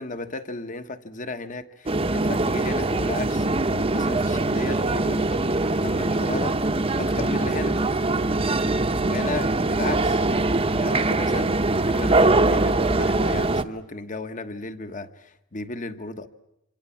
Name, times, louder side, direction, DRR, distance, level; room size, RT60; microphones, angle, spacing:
voice 1, 0.0-7.8 9.0-10.2 10.8-16.3, left 3 dB, 40° left, 10 dB, 1.3 m, -35 dB
sound 1, 1.9-13.6, right 2 dB, 30° right, 1.0 m, -22 dB
27.0 x 26.5 x 7.2 m, 0.85 s
head